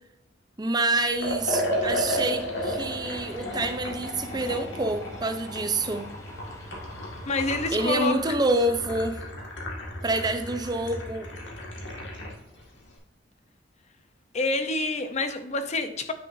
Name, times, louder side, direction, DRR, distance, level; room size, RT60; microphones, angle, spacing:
voice 1, 0.6-6.1 7.7-9.2 10.0-11.3, right 2 dB, 25° right, 8 dB, 0.6 m, -27 dB
Liquid, 1.2-12.4, left 1 dB, 85° left, 2.0 m, -33 dB
sound 1, 1.2-7.7, equal, 15° left, 0.9 m, -45 dB
voice 2, 7.3-8.2 14.3-16.1, left 3 dB, 40° left, 9 dB, 0.7 m, -27 dB
9.4 x 6.1 x 2.7 m, 0.82 s
head